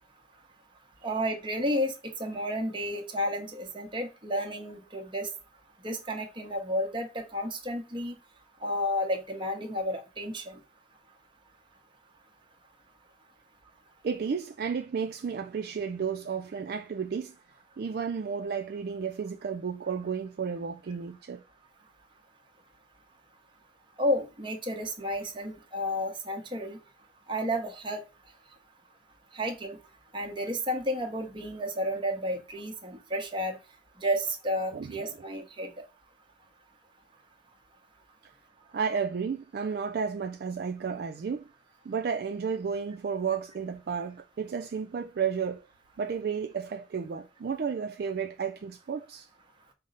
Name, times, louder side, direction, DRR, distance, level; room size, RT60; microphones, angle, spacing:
voice 1, 1.0-5.3 5.8-8.2 8.6-10.6 24.0-26.8 27.3-28.0 29.3-29.8 30.1-33.6 34.0-35.7, equal, 30° right, 0.9 m, -31 dB
voice 2, 14.0-17.4 17.8-21.4 34.7-34.9 38.7-41.5 41.9-45.6 46.0-49.3, right 6 dB, 60° right, 0.4 m, -32 dB
5.2 x 2.1 x 3.8 m
head